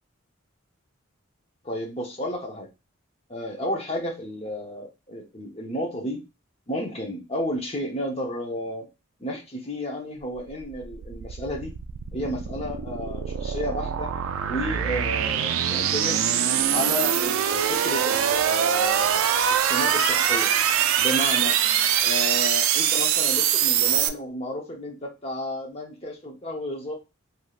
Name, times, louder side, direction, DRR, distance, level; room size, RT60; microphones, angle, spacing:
voice 1, 1.6-2.7 3.3-6.2 6.7-8.9 9.2-11.7 12.1-14.1 14.5-16.3 16.7-20.5 21.0-21.6 22.0-26.9, left 1 dB, 30° left, 1 dB, 0.7 m, -32 dB
sound 1, 10.4-24.1, right 9 dB, 75° right, 0.3 m, -23 dB
3.2 x 2.7 x 2.4 m, 0.26 s
head